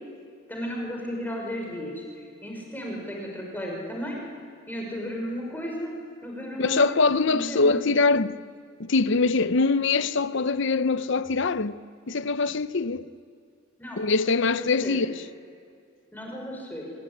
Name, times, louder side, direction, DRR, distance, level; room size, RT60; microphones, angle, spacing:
voice 1, 0.5-4.2 4.7-5.9 6.2-7.8 13.8-14.0 14.5-15.0 16.1-16.9, equal, 10° left, 5.9 m, -34 dB
voice 2, 6.6-8.4 8.8-11.8 12.1-13.1 14.0-15.2, left 3 dB, 60° left, 0.8 m, -23 dB
25.5 x 21.5 x 10.0 m
head